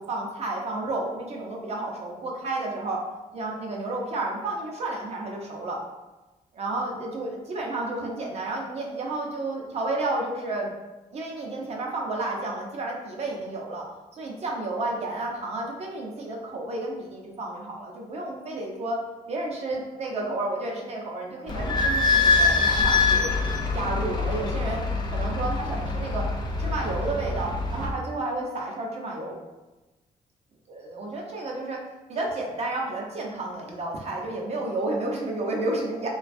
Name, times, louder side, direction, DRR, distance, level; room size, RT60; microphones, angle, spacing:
voice 1, 0.0-3.0 3.3-5.8 6.5-10.7 11.1-13.8 14.1-19.0 19.3-23.3 23.7-24.8 25.1-26.3 26.6-29.4 30.7-31.8 32.1-36.1, right 2 dB, 50° right, -1 dB, 0.6 m, -31 dB
Idling / Squeak, 21.5-27.9, left 3 dB, 30° left, 0.4 m, -24 dB
3.1 x 2.2 x 2.5 m, 1.1 s
wide cardioid pair, 145°, 14 cm